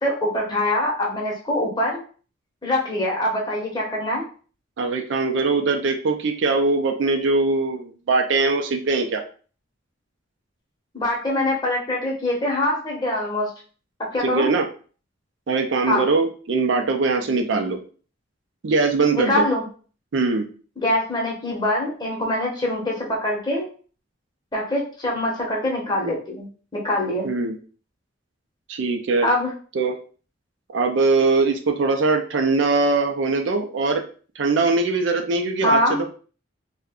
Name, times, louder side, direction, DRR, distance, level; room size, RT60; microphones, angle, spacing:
voice 1, 0.0-2.0 2.6-4.2 10.9-13.5 14.1-14.5 15.9-16.1 19.1-19.6 20.8-23.7 24.5-27.3 29.2-29.5 35.6-36.0, left 1 dB, 20° left, -2 dB, 0.8 m, -24 dB
voice 2, 4.8-9.2 14.2-14.7 15.5-17.8 18.6-19.4 20.1-20.5 27.2-27.6 28.7-29.3 29.7-29.9 30.7-34.0 34.4-36.1, right 3 dB, 65° right, 4 dB, 0.4 m, -21 dB
2.4 x 2.1 x 3.5 m, 0.40 s
head